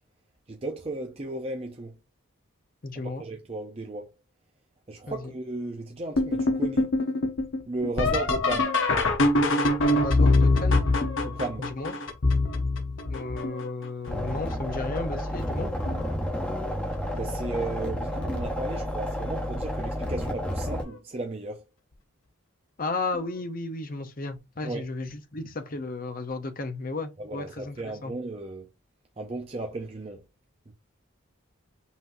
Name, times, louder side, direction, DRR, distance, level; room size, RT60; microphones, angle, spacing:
voice 1, 0.5-2.0 3.0-4.1 4.9-6.9 7.7-8.8 11.2-11.7 17.1-21.6 24.6-24.8 27.2-28.7 29.2-30.2 30.7-30.8, right 2 dB, 30° right, 0.6 m, -35 dB
voice 2, 2.8-3.2 5.1-5.2 9.9-10.9 11.6-11.9 13.1-15.7 22.8-27.8 28.0-28.1, left 3 dB, 40° left, 0.7 m, -34 dB
sound 1, 6.2-13.8 14.5-15.0 15.5-16.1 17.4-17.5 18.2-18.5 20.7-20.8 23.1-23.2, left 2 dB, 65° left, 0.9 m, -24 dB
sound 2, 14.1-20.8, equal, 5° left, 1.0 m, -31 dB
5.6 x 3.0 x 2.6 m
head